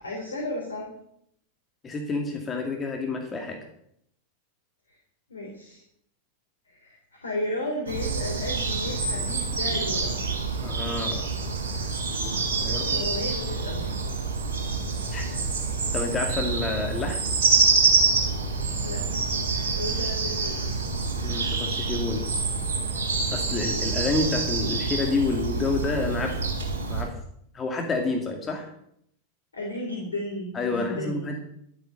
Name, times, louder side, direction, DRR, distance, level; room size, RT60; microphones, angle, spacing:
voice 1, 0.0-0.9 5.3-5.8 6.6-10.3 12.7-13.9 18.8-19.2 19.8-20.6 29.5-31.3, left 1 dB, 70° left, -1 dB, 3.3 m, -34 dB
voice 2, 1.8-3.6 10.6-11.2 12.1-12.8 15.1-15.3 15.9-17.2 21.2-22.2 23.3-26.3 26.9-27.1 27.5-28.7 30.5-31.4, left 3 dB, 20° left, 2 dB, 2.2 m, -29 dB
sound 1, 7.9-27.0, right 4 dB, 60° right, 4.0 m, -26 dB
12.5 x 8.6 x 6.6 m, 0.72 s
figure-of-eight pair, 90°, 0 cm